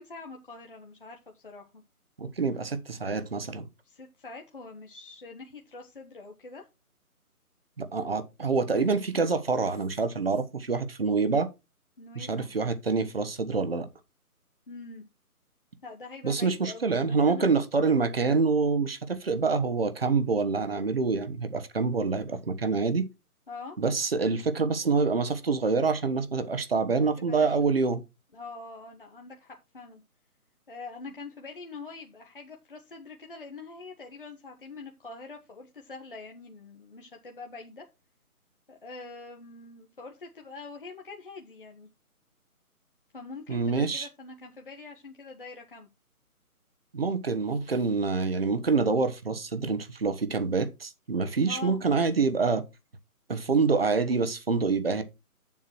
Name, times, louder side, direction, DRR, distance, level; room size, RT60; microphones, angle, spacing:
voice 1, 0.0-1.8 3.8-6.6 12.0-12.5 14.7-15.0 15.8-17.5 23.5-23.8 26.9-27.6 28.3-30.0 30.7-37.8 38.7-41.9 43.1-45.9 51.5-51.8, left 3 dB, 35° left, 1.2 m, -44 dB
voice 2, 2.2-3.7 7.8-11.5 12.1-13.9 16.2-23.1 23.8-28.0 43.5-44.1 46.9-52.6 53.3-55.0, right 4 dB, 40° right, 1.2 m, -26 dB
8.3 x 7.4 x 4.5 m
hypercardioid pair, 175°, 44 cm